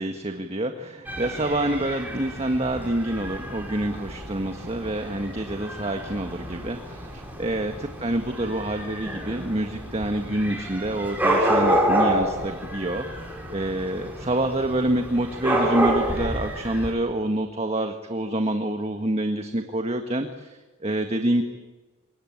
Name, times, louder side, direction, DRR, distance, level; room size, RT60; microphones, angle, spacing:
voice 1, 0.0-21.4, right 1 dB, 30° right, 6 dB, 1.6 m, -27 dB
Dog / Cat, 1.0-16.9, right 1 dB, 10° right, 6.2 m, -29 dB
26.5 x 23.0 x 8.8 m, 1.2 s
head